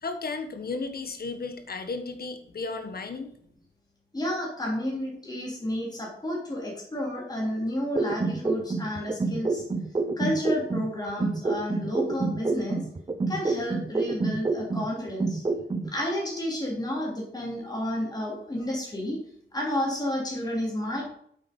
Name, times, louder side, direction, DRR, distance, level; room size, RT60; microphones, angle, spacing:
voice 1, 0.0-3.3, left 3 dB, 50° left, 7 dB, 1.4 m, -34 dB
voice 2, 4.1-9.6 10.2-12.8 13.3-15.4 15.9-19.2 19.5-21.0, left 1 dB, 20° left, -3 dB, 3.5 m, -31 dB
sound 1, 8.0-10.9 11.2-14.9 15.2-15.9, right 3 dB, 25° right, 0.8 m, -28 dB
8.5 x 8.1 x 5.4 m, 0.67 s
wide cardioid pair, 160°, 21 cm